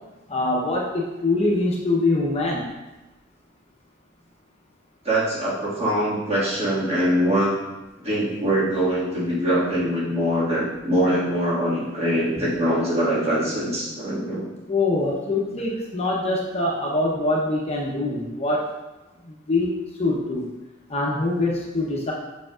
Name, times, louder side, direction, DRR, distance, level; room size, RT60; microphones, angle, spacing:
voice 1, 0.3-2.7 12.4-12.5 14.7-18.7 19.2-19.7 20.0-20.5 20.9-22.1, left 2 dB, 35° left, -3 dB, 0.9 m, -24 dB
voice 2, 5.0-7.6 8.0-14.4, equal, 35° right, -7 dB, 1.9 m, -23 dB
7.6 x 5.7 x 2.4 m, 1.1 s
head